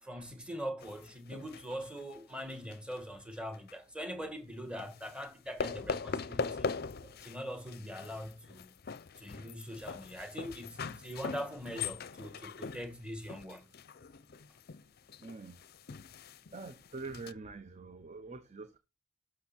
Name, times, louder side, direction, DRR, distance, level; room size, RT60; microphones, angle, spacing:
voice 1, 0.0-6.7 7.2-8.7 9.2-13.6, equal, 5° right, 1.8 m, -42 dB
sound 1, 0.8-3.0 3.3-3.7 4.8-5.3 5.6-7.4 7.7-17.3, left 4 dB, 50° left, 0.6 m, -41 dB
voice 2, 15.2-15.6 16.5-18.8, right 3 dB, 35° right, 0.8 m, -45 dB
11.5 x 6.6 x 4.3 m
head